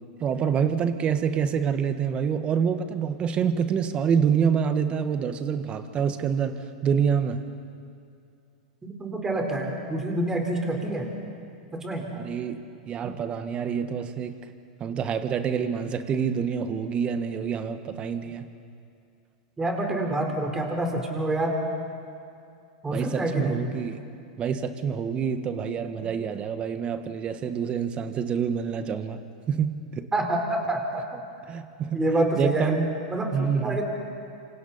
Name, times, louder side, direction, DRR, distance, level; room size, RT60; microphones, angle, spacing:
voice 1, 0.2-7.4 12.1-14.3 14.8-18.4 22.9-24.0 24.4-29.2 29.5-30.1 31.5-32.9 33.3-33.8, right 7 dB, 30° right, 10 dB, 1.4 m, -27 dB
voice 2, 8.8-11.1 11.7-12.1 19.6-21.5 22.8-23.7 30.1-31.2 31.9-32.7 33.1-33.3 33.6-33.8, right 1 dB, 15° right, 1 dB, 4.3 m, -27 dB
27.5 x 26.0 x 4.3 m, 2.5 s
hypercardioid pair, 105°, 4 cm